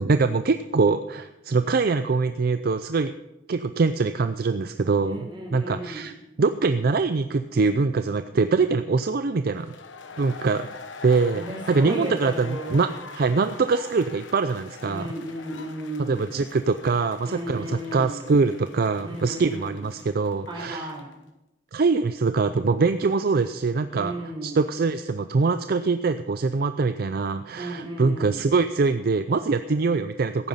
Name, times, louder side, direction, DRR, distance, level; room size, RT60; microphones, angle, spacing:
voice 1, 0.0-3.1 3.5-6.1 6.4-9.7 10.2-10.7 11.0-15.1 16.1-20.9 21.7-24.1 24.4-30.5, right 4 dB, 55° right, 10 dB, 0.5 m, -23 dB
voice 2, 5.0-6.1 10.2-10.3 11.3-12.9 14.8-16.3 17.2-18.2 19.0-19.8 20.5-21.1 23.9-24.6 27.6-28.4, right 1 dB, 25° right, -1 dB, 4.3 m, -34 dB
sound 1, 9.5-21.2, left 4 dB, 85° left, 1.1 m, -44 dB
15.5 x 9.2 x 5.6 m, 0.95 s
head